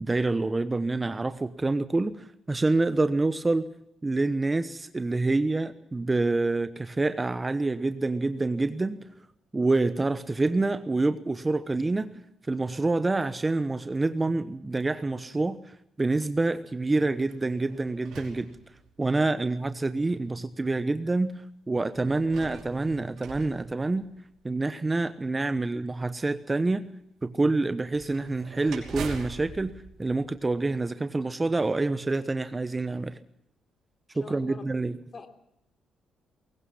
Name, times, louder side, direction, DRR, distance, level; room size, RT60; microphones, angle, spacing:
voice 1, 0.0-3.7 4.0-9.0 9.5-12.1 12.5-18.5 19.0-21.3 21.7-24.1 24.4-26.8 27.2-29.7 30.0-33.2 34.1-35.0, right 2 dB, 20° right, 12 dB, 1.0 m, -27 dB
sound 1, 17.2-19.2 20.0-20.1 21.9-24.5 27.9-31.0, right 5 dB, 70° right, 5.4 m, -43 dB
voice 2, 34.2-34.7 35.1-35.3, left 4 dB, 40° left, 7 dB, 3.3 m, -42 dB
22.0 x 18.0 x 7.2 m, 0.79 s
cardioid pair, 90°, 0 cm